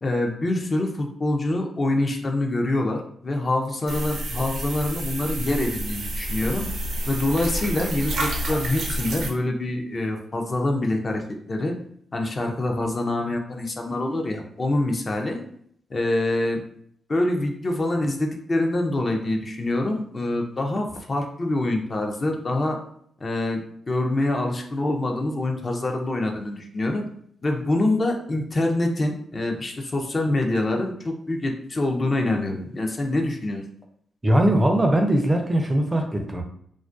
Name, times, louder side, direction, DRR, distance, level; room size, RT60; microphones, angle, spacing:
voice 1, 0.0-6.7 7.1-11.2 11.5-11.7 12.1-15.4 15.9-16.6 17.1-22.8 23.2-23.6 23.9-27.0 27.4-33.6, left 2 dB, 40° left, 2 dB, 0.4 m, -25 dB
sound 1, 3.9-9.3, right 1 dB, 80° right, 0.5 m, -29 dB
voice 2, 34.2-36.4, right 1 dB, 20° right, 3 dB, 0.4 m, -20 dB
2.3 x 2.2 x 2.5 m, 0.66 s
cardioid pair, 70°, 0 cm